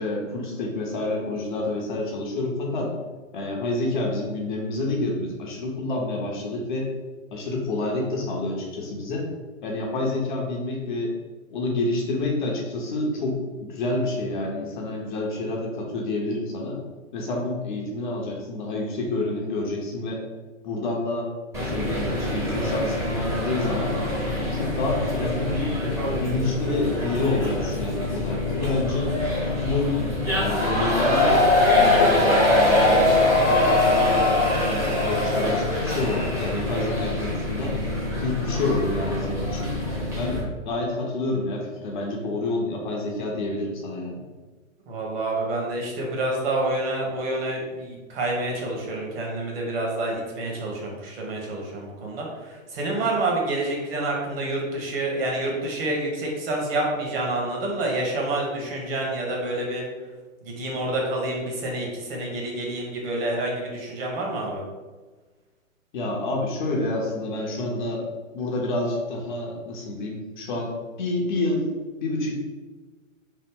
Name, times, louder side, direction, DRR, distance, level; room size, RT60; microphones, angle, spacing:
voice 1, 0.0-2.9 3.3-6.9 7.3-9.3 9.6-11.1 11.5-16.8 17.1-20.2 20.6-21.3 21.6-24.0 24.5-25.8 26.0-29.2 29.4-30.0 30.4-33.1 33.5-37.8 38.2-39.8 40.1-44.2 65.9-68.0 68.3-71.7 72.0-72.4, left 2 dB, 40° left, -1 dB, 0.5 m, -28 dB
sound 1, 21.5-40.4, left 2 dB, 5° right, 0.6 m, -23 dB
voice 2, 44.9-59.8 60.4-64.6, right 2 dB, 45° right, -1 dB, 1.0 m, -28 dB
3.0 x 2.0 x 3.5 m, 1.3 s
hypercardioid pair, 120°, 40 cm